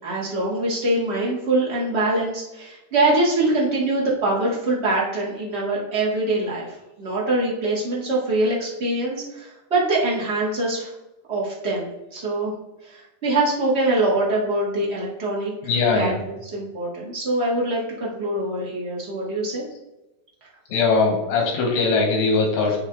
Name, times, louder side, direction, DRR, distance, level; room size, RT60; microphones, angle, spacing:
voice 1, 0.0-10.9 11.3-12.5 12.8-15.5 15.9-16.1 16.5-19.6, right 2 dB, 65° right, -5 dB, 0.6 m, -23 dB
voice 2, 15.6-16.2 20.7-22.8, left 4 dB, 90° left, 2 dB, 3.1 m, -20 dB
9.5 x 3.3 x 3.9 m, 0.97 s
omnidirectional pair, 3.8 m